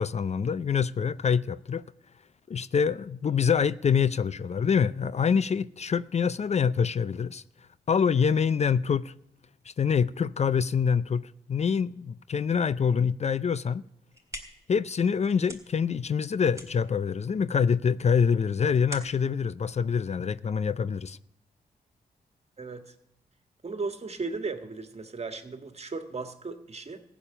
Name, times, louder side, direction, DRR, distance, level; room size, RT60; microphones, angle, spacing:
voice 1, 0.0-1.9 2.5-7.4 7.9-9.1 9.8-13.8 14.7-21.2, left 6 dB, 45° left, 0.5 m, -25 dB
sound 1, 13.9-20.7, right 1 dB, 20° right, 3.6 m, -47 dB
voice 2, 22.6-22.9 23.6-27.0, right 4 dB, 40° right, 1.8 m, -36 dB
15.0 x 7.2 x 10.0 m
supercardioid pair, 50°, 16 cm